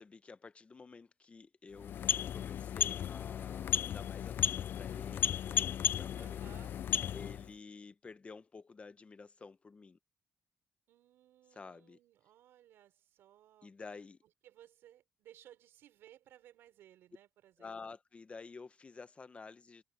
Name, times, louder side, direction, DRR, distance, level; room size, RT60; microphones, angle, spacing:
voice 1, 0.0-6.4 7.1-10.0 11.5-12.0 13.6-14.2 17.6-19.8, left 4 dB, 30° left, 1.0 m, -51 dB
sound 1, 1.7-7.5, left 9 dB, 65° left, 0.4 m, -34 dB
voice 2, 6.1-6.7 10.9-13.7 14.4-17.9, right 12 dB, 90° right, 5.1 m, -60 dB
cardioid pair, 95°, 4 cm